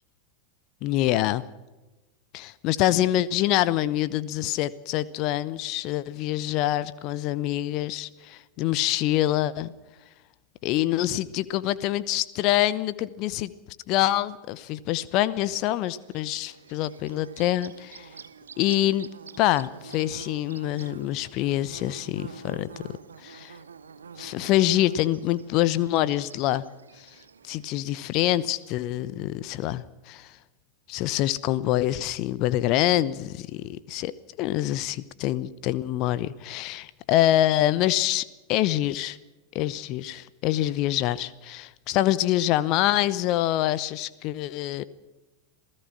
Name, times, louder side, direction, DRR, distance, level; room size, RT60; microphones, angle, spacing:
voice 1, 0.8-1.4 2.3-9.7 10.6-13.5 13.9-18.1 18.6-19.1 19.4-22.7 23.2-23.6 24.2-26.6 27.0-27.1 27.4-30.4 30.9-34.1 34.4-39.2 39.5-44.8, left 14 dB, 40° left, 18 dB, 0.9 m, -25 dB
Bird / Buzz, 15.9-28.8, right 6 dB, 70° right, 1.3 m, -47 dB
27.5 x 16.5 x 6.0 m, 1.1 s
figure-of-eight pair, 90°, 0 cm